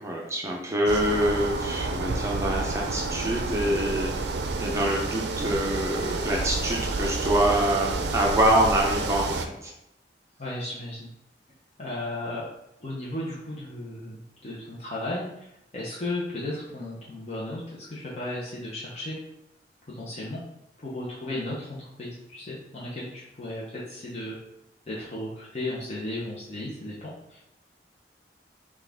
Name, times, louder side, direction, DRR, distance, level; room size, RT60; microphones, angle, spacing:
voice 1, 0.0-4.2 4.6-9.7, right 1 dB, 15° right, -1 dB, 0.6 m, -25 dB
sound 1, 0.9-9.5, right 3 dB, 70° right, 0.4 m, -30 dB
voice 2, 10.4-11.1 11.8-12.5 12.8-19.2 19.9-20.4 20.8-24.4 24.9-27.4, left 1 dB, 35° left, -7 dB, 0.7 m, -35 dB
5.9 x 2.4 x 3.4 m, 0.83 s
head